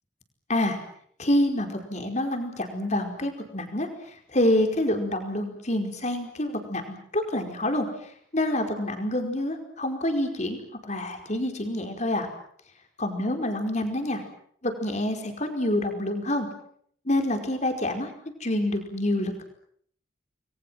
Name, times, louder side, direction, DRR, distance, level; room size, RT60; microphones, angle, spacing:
voice 1, 1.2-7.9 8.3-10.6 10.8-12.3 13.0-14.2 14.6-16.5 17.0-18.1 18.4-19.4, left 1 dB, 35° left, 5 dB, 5.0 m, -27 dB
29.5 x 22.0 x 7.7 m, 0.64 s
head